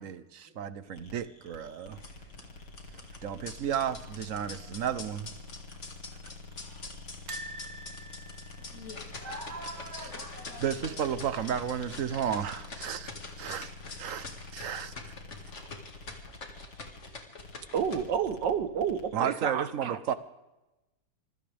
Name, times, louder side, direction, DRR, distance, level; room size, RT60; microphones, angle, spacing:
voice 1, 0.0-2.0 3.2-5.3 10.6-13.1 13.4-13.7 14.0-14.3 14.5-15.1 19.1-20.1, right 9 dB, 55° right, 13 dB, 1.1 m, -33 dB
sound 1, 0.9-19.1, left 3 dB, 65° left, 2.5 m, -48 dB
sound 2, 1.9-17.9, left 3 dB, 40° left, 2.3 m, -46 dB
sound 3, 7.3-10.3 10.6-10.8 11.1-11.2 12.4-12.9 13.4-13.5, right 2 dB, 40° right, 1.8 m, -46 dB
voice 2, 9.2-11.9, right 1 dB, 10° right, -1 dB, 2.1 m, -45 dB
voice 3, 17.7-20.1, right 7 dB, 75° right, 11 dB, 1.7 m, -30 dB
25.5 x 16.5 x 3.5 m, 0.99 s
omnidirectional pair, 2.0 m